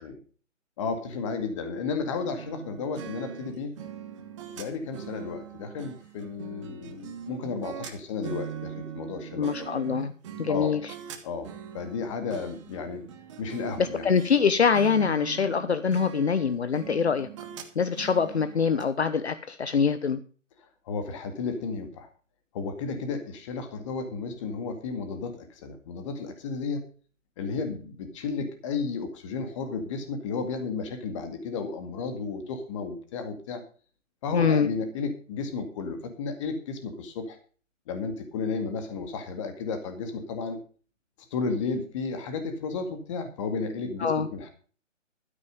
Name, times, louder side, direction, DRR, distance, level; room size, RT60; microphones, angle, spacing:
voice 1, 0.8-3.7 4.6-9.7 10.5-10.8 11.2-11.5 11.7-13.0 13.4-14.1 20.9-22.1 22.5-26.8 27.4-33.6 34.2-37.4 37.9-40.6 41.3-44.5, left 4 dB, 25° left, 8 dB, 2.2 m, -33 dB
sound 1, 2.2-14.4 14.7-18.8, right 8 dB, 25° right, 1.5 m, -41 dB
voice 2, 9.4-10.1 10.4-10.8 13.8-17.3 17.7-20.2 34.3-34.7 44.0-44.3, left 6 dB, 55° left, 12 dB, 1.1 m, -24 dB
13.0 x 9.3 x 5.3 m, 0.40 s
figure-of-eight pair, 145°, 38 cm